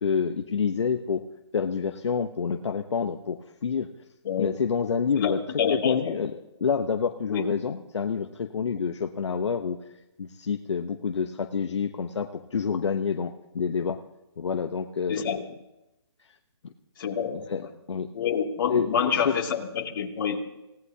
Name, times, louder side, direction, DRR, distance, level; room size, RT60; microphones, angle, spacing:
voice 1, 0.0-1.2 1.5-3.9 4.4-5.4 5.7-6.3 6.6-9.8 10.2-14.0 14.4-15.4 17.2-18.1 18.7-18.9 19.2-19.3, left 6 dB, 75° left, 5 dB, 1.0 m, -28 dB
voice 2, 5.6-6.1 7.3-7.4 15.1-15.4 17.0-17.4 18.1-20.4, left 7 dB, 45° left, 0 dB, 2.6 m, -27 dB
27.5 x 17.5 x 2.8 m, 0.94 s
hypercardioid pair, 160°, 15 cm